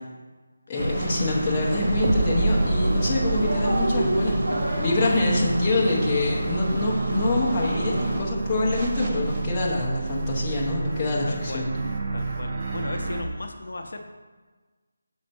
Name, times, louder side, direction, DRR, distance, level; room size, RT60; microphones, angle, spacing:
voice 1, 0.7-11.7, left 2 dB, 15° left, -6 dB, 0.8 m, -25 dB
sound 1, 0.7-8.2, right 1 dB, 55° right, 1.6 m, -30 dB
sound 2, 0.8-13.2, right 3 dB, 30° right, 0.5 m, -29 dB
voice 2, 11.3-11.7 12.1-14.0, left 2 dB, 60° left, 4 dB, 0.6 m, -36 dB
6.3 x 4.3 x 4.4 m, 1.4 s
figure-of-eight pair, 180°, 0 cm